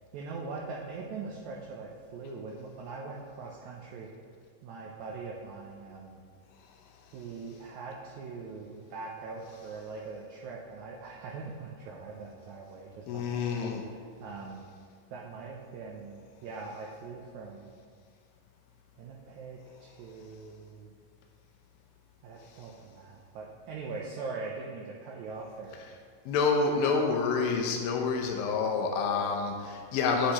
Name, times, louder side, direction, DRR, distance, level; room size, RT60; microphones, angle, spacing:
voice 1, 0.1-4.1 4.6-6.2 7.1-14.6 15.1-17.8 19.0-20.9 22.2-25.8, right 4 dB, 80° right, -2 dB, 1.7 m, -42 dB
voice 2, 13.1-13.8 26.3-30.3, left 4 dB, 90° left, 1 dB, 2.5 m, -28 dB
8.3 x 8.0 x 2.9 m, 2.1 s
omnidirectional pair, 4.1 m